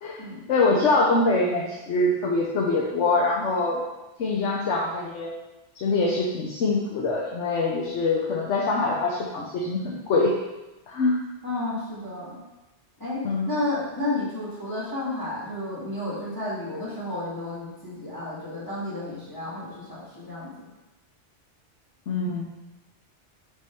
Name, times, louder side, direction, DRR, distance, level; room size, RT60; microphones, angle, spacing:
voice 1, 0.5-3.8 4.2-5.3 5.7-10.3 10.9-11.2 13.2-13.5 22.1-22.4, left 3 dB, 80° left, -2 dB, 1.1 m, -24 dB
voice 2, 11.4-12.4 13.0-20.7, left 2 dB, 20° left, -8 dB, 1.8 m, -32 dB
6.1 x 3.8 x 4.4 m, 1.0 s
omnidirectional pair, 1.2 m